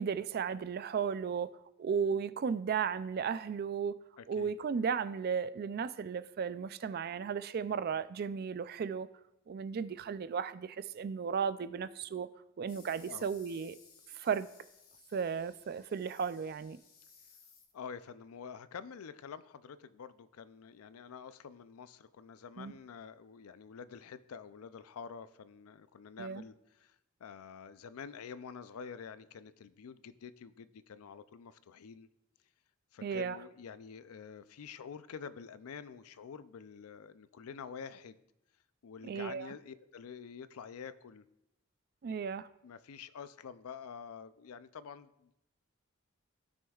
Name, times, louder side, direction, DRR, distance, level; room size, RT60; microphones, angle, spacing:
voice 1, 0.0-1.5 1.8-4.0 4.3-9.1 9.5-12.3 12.6-13.8 14.1-14.5 15.1-16.8 22.6-22.7 26.2-26.4 33.0-33.4 39.0-39.5 42.0-42.5, right 6 dB, 45° right, 14 dB, 0.3 m, -35 dB
voice 2, 4.2-4.5 13.1-13.3 17.7-32.1 32.9-38.2 38.8-41.3 42.6-45.3, left 6 dB, 90° left, 14 dB, 0.4 m, -48 dB
sound 1, 12.7-18.0, left 5 dB, 45° left, 1.1 m, -61 dB
16.0 x 6.3 x 2.4 m, 0.86 s
head